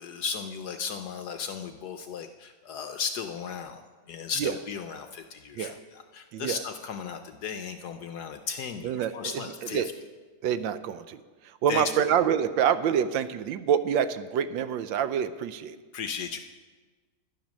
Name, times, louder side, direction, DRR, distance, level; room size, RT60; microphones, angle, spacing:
voice 1, 0.0-3.8 4.1-9.9 11.7-12.1 15.9-16.4, left 6 dB, 70° left, 7 dB, 1.0 m, -35 dB
voice 2, 8.8-9.5 9.7-9.9 10.4-11.2 11.6-15.8, right 8 dB, 75° right, 12 dB, 1.3 m, -26 dB
11.5 x 10.5 x 6.2 m, 1.4 s
omnidirectional pair, 2.2 m